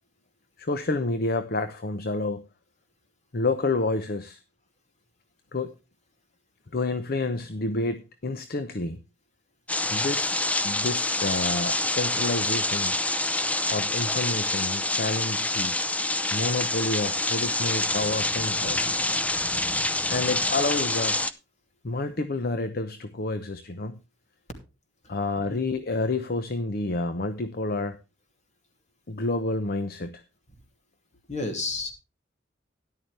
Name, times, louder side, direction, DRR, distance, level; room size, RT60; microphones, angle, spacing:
voice 1, 0.6-2.4 3.3-4.4 5.5-5.7 6.7-9.0 9.9-10.3 10.6-12.9 13.7-15.8 16.3-19.0 20.1-21.2 21.8-24.0 25.1-28.0 29.1-30.2, left 2 dB, 55° left, 10 dB, 0.8 m, -29 dB
sound 1, 9.7-21.3, left 2 dB, 10° left, 0.6 m, -26 dB
voice 2, 31.3-31.9, left 3 dB, 40° left, 5 dB, 2.7 m, -31 dB
13.0 x 11.0 x 3.3 m, 0.28 s
head